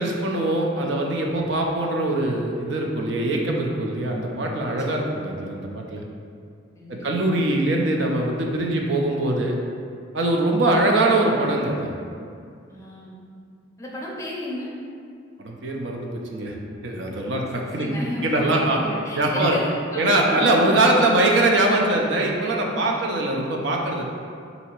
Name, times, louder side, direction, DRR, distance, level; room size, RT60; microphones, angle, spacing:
voice 1, 0.0-6.0 6.9-9.5 10.1-11.9 15.4-16.6 16.8-17.9 18.2-18.8 19.2-19.6 20.0-24.0, right 2 dB, 60° right, 0 dB, 0.5 m, -22 dB
voice 2, 6.7-7.3 12.7-13.2 13.8-14.7 17.2-20.7 22.8-23.1, left 1 dB, 15° left, -4 dB, 0.5 m, -33 dB
4.0 x 2.7 x 4.4 m, 2.3 s
head